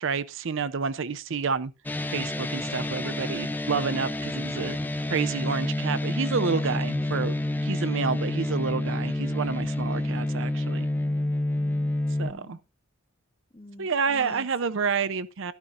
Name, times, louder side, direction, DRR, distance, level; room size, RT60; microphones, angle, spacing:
voice 1, 0.0-1.7 2.1-4.8 5.1-10.9 12.2-12.6 13.8-15.5, right 5 dB, 60° right, 0.6 m, -29 dB
sound 1, 1.9-12.3, left 1 dB, 10° left, 0.5 m, -28 dB
voice 2, 4.2-4.8 6.6-7.2 9.8-10.3 10.9-12.6 13.5-14.5, left 1 dB, 25° left, 1.0 m, -47 dB
13.0 x 11.5 x 2.5 m
head